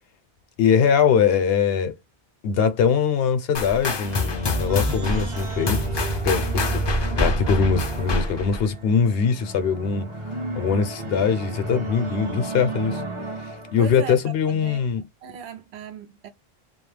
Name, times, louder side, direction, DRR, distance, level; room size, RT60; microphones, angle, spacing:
voice 1, 0.6-1.9 2.4-10.1 10.5-13.0 13.7-15.0, left 6 dB, 75° left, 0.8 m, -22 dB
sound 1, 3.5-8.7, left 3 dB, 45° left, 0.3 m, -27 dB
sound 2, 4.0-14.1, right 2 dB, 35° right, 0.6 m, -31 dB
voice 2, 13.8-14.9 15.2-16.3, right 8 dB, 90° right, 0.9 m, -37 dB
2.3 x 2.1 x 3.1 m
omnidirectional pair, 1.0 m